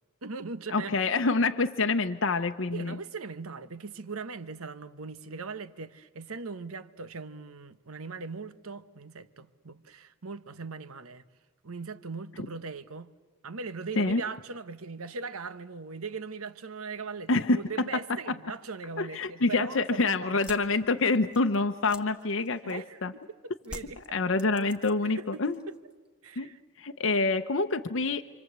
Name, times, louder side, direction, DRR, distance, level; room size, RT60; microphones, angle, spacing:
voice 1, 0.2-1.1 2.7-11.2 11.6-13.1 13.4-20.4 22.6-23.0 23.4-24.0 25.0-25.4 26.2-26.6 27.1-27.3, right 4 dB, 80° right, 1.1 m, -40 dB
voice 2, 0.7-3.0 14.0-14.2 17.3-17.9 19.0-23.1 24.1-25.6 26.4-26.5 26.8-28.2, left 3 dB, 65° left, 0.8 m, -27 dB
sound 1, 20.3-23.0 23.6-25.2 25.5-26.1, equal, 5° right, 1.2 m, -46 dB
28.0 x 25.0 x 8.1 m
head